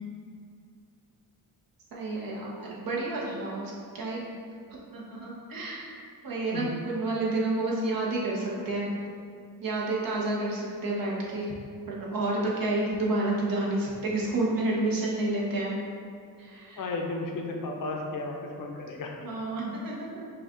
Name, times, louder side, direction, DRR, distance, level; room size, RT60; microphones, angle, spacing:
voice 1, 1.9-4.2 4.9-5.9 6.2-8.9 9.6-11.5 11.9-15.8 16.4-16.8 19.2-20.1, right 2 dB, 65° right, -4 dB, 1.1 m, -30 dB
voice 2, 16.8-19.1, left 3 dB, 60° left, 1 dB, 0.7 m, -34 dB
5.7 x 2.4 x 3.8 m, 2.4 s
cardioid pair, 105°, 38 cm